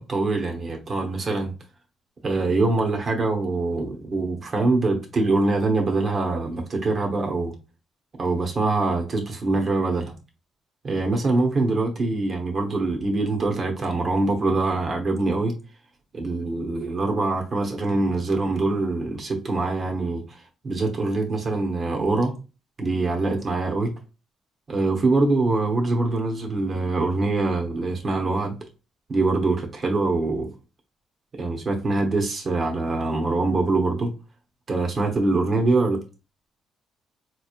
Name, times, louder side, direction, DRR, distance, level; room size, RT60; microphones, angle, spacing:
voice 1, 0.0-1.5 2.2-7.5 8.2-10.1 10.8-15.5 16.1-22.3 22.8-23.9 24.7-28.6 29.1-30.5 31.3-34.1 34.7-36.0, right 3 dB, 40° right, 1.1 m, -24 dB
3.9 x 3.1 x 2.5 m
cardioid pair, 90°, 0 cm